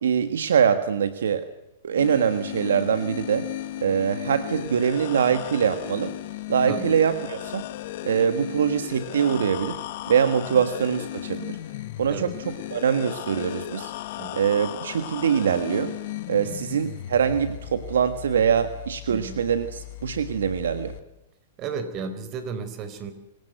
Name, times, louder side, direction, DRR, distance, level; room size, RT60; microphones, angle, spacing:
voice 1, 0.0-1.4 1.8-3.5 3.8-6.1 6.5-7.6 8.0-9.8 10.1-11.6 12.0-13.9 14.3-15.9 16.3-20.9, right 7 dB, 75° right, 10 dB, 1.6 m, -23 dB
sound 1, 2.0-21.0, left 15 dB, 55° left, 1.2 m, -36 dB
voice 2, 16.4-16.8 19.1-19.4 21.6-23.1, right 5 dB, 35° right, 11 dB, 4.1 m, -34 dB
25.0 x 17.5 x 8.0 m, 0.89 s
hypercardioid pair, 110°, 0 cm